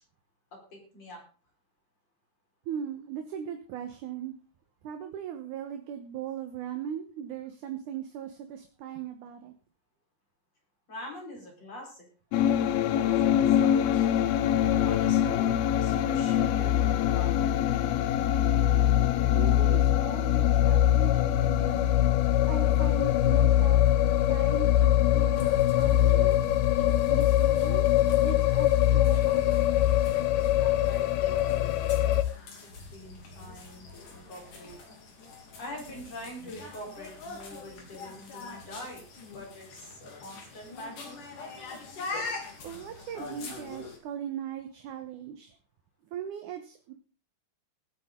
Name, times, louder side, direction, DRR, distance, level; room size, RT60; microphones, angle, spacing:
voice 1, 0.5-1.2 10.9-12.1 12.5-14.1 14.8-15.5 15.8-17.9 30.6-32.0 32.6-34.8 35.6-39.0 39.3-41.2, left 1 dB, 40° left, -1 dB, 5.5 m, -44 dB
voice 2, 2.7-4.3 4.8-9.5 19.4-22.0 22.5-23.8 24.2-25.5 25.8-26.4 27.0-29.4 42.6-45.5 46.1-46.9, right 8 dB, 65° right, 6 dB, 2.2 m, -39 dB
sound 1, 12.3-32.2, left 12 dB, 80° left, 2.7 m, -23 dB
sound 2, 25.3-44.0, left 3 dB, 55° left, 4.1 m, -44 dB
20.0 x 9.0 x 3.7 m, 0.36 s
omnidirectional pair, 4.6 m